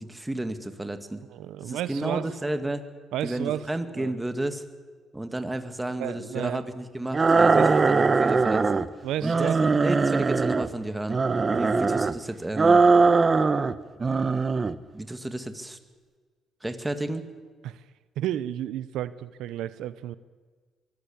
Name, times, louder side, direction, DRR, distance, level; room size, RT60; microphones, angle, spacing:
voice 1, 0.0-1.2 1.6-2.9 3.2-4.6 5.1-8.8 9.2-11.2 11.6-12.8 14.9-15.8 16.6-17.3, right 1 dB, 10° right, 8 dB, 2.1 m, -32 dB
voice 2, 1.3-2.3 3.1-3.7 3.9-4.1 6.0-6.6 7.3-7.9 9.0-9.6 17.6-17.8 18.2-20.2, right 12 dB, 90° right, 15 dB, 0.7 m, -32 dB
Monster Rawr, 7.1-8.9 9.2-10.7 11.1-12.2 12.6-13.7 14.0-14.8, right 4 dB, 30° right, 1.0 m, -21 dB
23.5 x 14.5 x 8.6 m, 1.5 s
cardioid pair, 90°, 0 cm